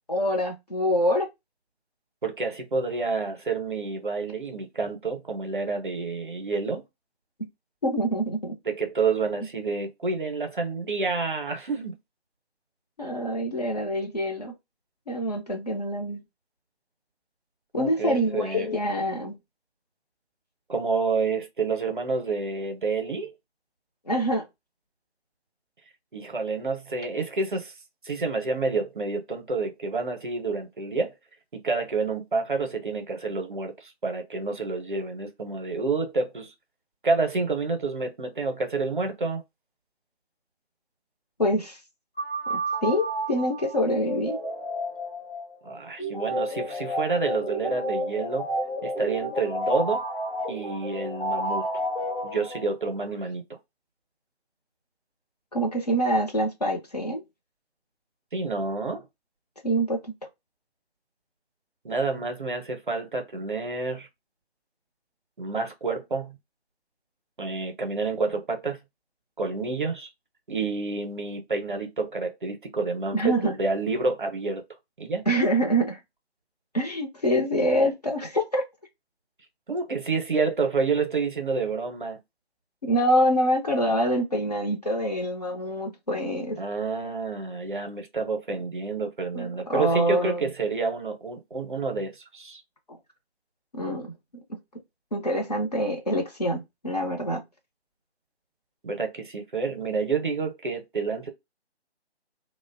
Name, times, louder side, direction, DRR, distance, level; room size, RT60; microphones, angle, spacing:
voice 1, 0.1-1.3 7.8-8.6 13.0-14.5 15.1-16.2 17.7-19.4 24.1-24.4 41.4-41.8 42.5-44.4 55.5-57.2 59.6-60.0 73.1-73.5 75.3-76.0 76.7-78.6 82.8-86.6 89.3-90.4 93.7-94.1 95.1-97.4, equal, 40° left, 0.5 m, -25 dB
voice 2, 2.2-6.8 8.7-12.0 17.7-18.7 20.7-23.3 26.1-27.7 28.0-31.1 31.5-36.5 37.0-39.4 45.6-48.5 48.8-50.0 50.5-51.7 52.2-53.6 58.3-59.1 61.8-64.1 65.4-66.4 67.4-68.8 69.4-70.1 70.5-74.6 75.0-75.2 79.7-82.2 86.6-92.6 98.8-101.3, right 4 dB, 50° right, 0.6 m, -29 dB
sound 1, 42.2-52.9, equal, 55° left, 1.0 m, -31 dB
2.4 x 2.0 x 2.5 m
figure-of-eight pair, 155°, 33 cm